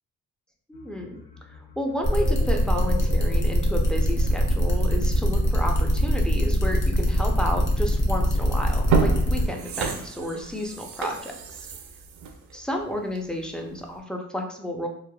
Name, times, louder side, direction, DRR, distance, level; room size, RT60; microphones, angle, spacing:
sound 1, 0.7-10.0, left 6 dB, 75° left, 0.5 m, -42 dB
voice 1, 0.7-1.2 1.5-11.7 12.5-14.9, equal, 5° left, 2 dB, 0.4 m, -31 dB
sound 2, 2.0-9.5, equal, 40° left, 0.7 m, -23 dB
sound 3, 8.8-13.4 13.8-13.9, right 5 dB, 65° right, 0.5 m, -29 dB
3.0 x 2.1 x 2.2 m, 0.62 s
cardioid pair, 90°, 30 cm